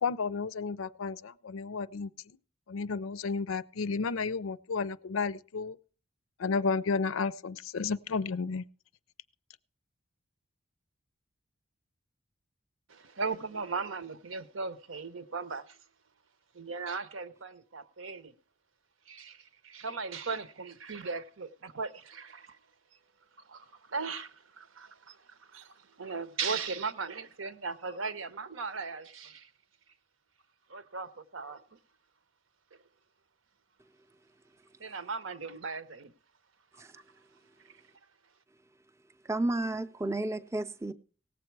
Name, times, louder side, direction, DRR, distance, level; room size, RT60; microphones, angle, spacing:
voice 1, 0.0-2.1 2.7-5.8 6.4-8.6, left 4 dB, 85° left, 0.5 m, -32 dB
voice 2, 12.9-15.8 16.5-18.3 19.1-22.6 23.4-29.5 30.7-31.8 34.8-36.1 36.8-37.0, right 4 dB, 75° right, 0.8 m, -38 dB
voice 3, 39.2-40.9, right 2 dB, 15° right, 0.5 m, -32 dB
18.0 x 7.7 x 4.6 m
head